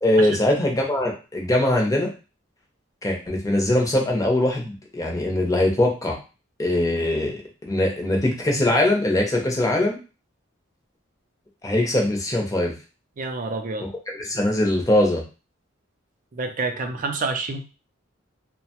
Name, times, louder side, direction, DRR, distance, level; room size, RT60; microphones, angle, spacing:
voice 1, 0.0-2.1 3.0-6.2 6.6-10.0 11.6-12.7 13.8-15.2, left 1 dB, 15° left, 0 dB, 0.7 m, -22 dB
voice 2, 13.2-13.9 16.3-17.6, right 3 dB, 45° right, 5 dB, 0.5 m, -28 dB
2.8 x 2.1 x 2.9 m, 0.32 s
head